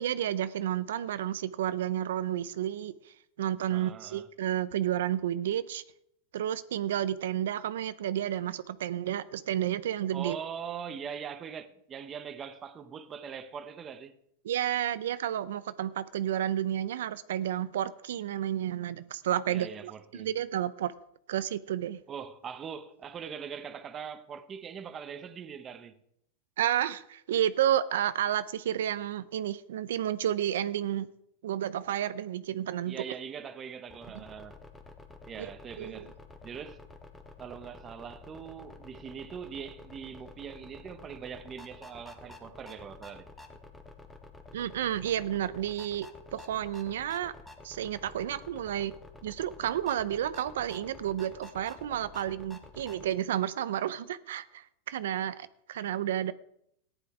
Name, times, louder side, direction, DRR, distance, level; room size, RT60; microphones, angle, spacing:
voice 1, 0.0-2.9 3.4-5.8 6.3-10.4 14.4-20.9 21.3-22.0 26.6-31.1 31.4-33.0 34.1-34.2 35.8-36.1 44.5-46.1 46.3-47.3 47.6-48.9 49.2-56.3, right 11 dB, 85° right, 0.6 m, -31 dB
voice 2, 3.7-4.3 10.1-14.2 19.5-20.3 22.1-26.0 32.8-34.6 35.3-36.2 36.4-36.8 37.4-43.3, right 7 dB, 25° right, 1.0 m, -42 dB
sound 1, 33.9-53.1, left 3 dB, 10° left, 1.5 m, -50 dB
14.5 x 10.0 x 4.8 m
supercardioid pair, 145°, 0 cm